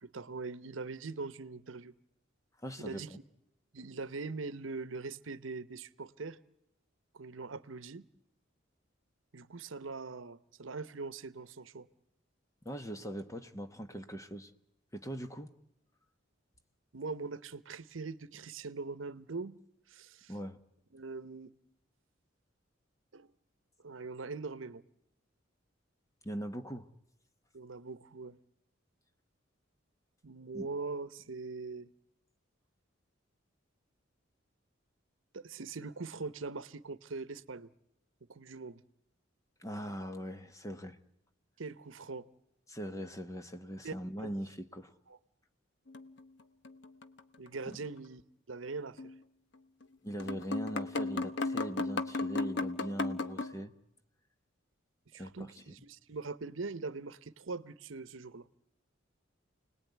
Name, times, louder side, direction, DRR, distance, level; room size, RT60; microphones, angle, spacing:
voice 1, 0.0-1.9 2.8-3.1 3.7-6.4 7.1-8.1 9.3-11.9 16.9-19.6 19.9-20.3 20.9-21.6 23.1-23.3 23.8-24.8 27.5-28.4 30.2-31.9 35.3-37.7 38.3-38.8 41.6-42.3 43.8-44.4 45.1-45.2 47.4-48.2 48.5-49.1 55.1-58.5, right 3 dB, 80° right, 0.9 m, -42 dB
voice 2, 2.6-3.2 12.6-14.5 14.9-15.5 20.3-20.6 26.2-26.9 30.5-30.7 39.6-41.0 42.7-44.9 47.7-47.8 50.0-53.7 55.2-55.7, equal, 15° left, 1.2 m, -41 dB
sound 1, 45.9-47.2 47.5-47.6 49.0-49.2 49.8-49.9 50.2-53.5, left 3 dB, 60° left, 1.2 m, -35 dB
29.5 x 19.5 x 9.4 m
head